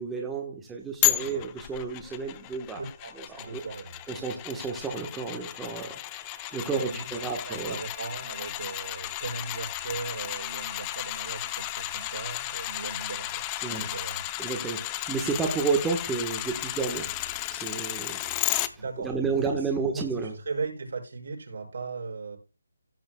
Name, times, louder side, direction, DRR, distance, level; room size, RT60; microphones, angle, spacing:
voice 1, 0.0-2.8 3.3-3.6 4.1-6.0 6.3-7.8 13.6-13.9 14.4-17.1 17.5-18.2 18.7-20.3, right 5 dB, 5° right, 1 dB, 1.2 m, -31 dB
sound 1, 1.0-18.7 19.1-19.2, left 16 dB, 20° left, 0.6 m, -33 dB
voice 2, 2.8-4.0 6.7-7.1 7.5-13.4 13.7-14.3 18.8-22.4, right 4 dB, 65° right, 1 dB, 5.5 m, -37 dB
16.5 x 8.7 x 2.2 m, 0.29 s
hypercardioid pair, 165°, 0 cm